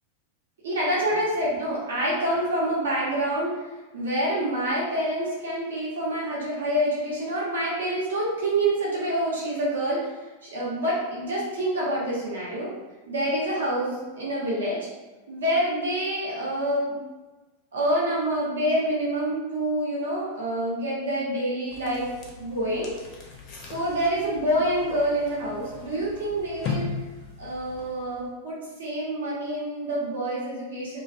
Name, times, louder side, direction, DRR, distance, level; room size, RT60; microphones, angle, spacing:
voice 1, 0.6-3.6 3.9-10.1 10.4-12.7 13.1-14.9 15.3-17.0 17.7-22.1 22.4-23.0 23.6-27.0 27.4-31.0, right 1 dB, 65° right, -5 dB, 0.7 m, -27 dB
sound 1, 21.7-28.3, left 5 dB, 40° left, 0.5 m, -38 dB
2.4 x 2.3 x 2.4 m, 1.2 s
figure-of-eight pair, 90°, 0 cm